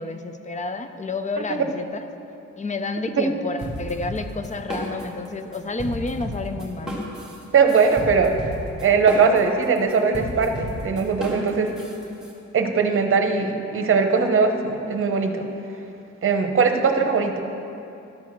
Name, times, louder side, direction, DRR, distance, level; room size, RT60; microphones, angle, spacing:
voice 1, 0.0-2.1 2.6-7.0 11.6-12.1, left 3 dB, 25° left, 8 dB, 0.5 m, -30 dB
sound 1, 3.6-5.3 5.5-12.3, equal, ahead, 2.0 m, -32 dB
voice 2, 7.5-8.3 8.8-11.7 12.5-15.5 16.2-17.4, right 5 dB, 45° right, 5 dB, 0.9 m, -20 dB
11.5 x 4.6 x 7.3 m, 2.8 s
wide cardioid pair, 130°, 29 cm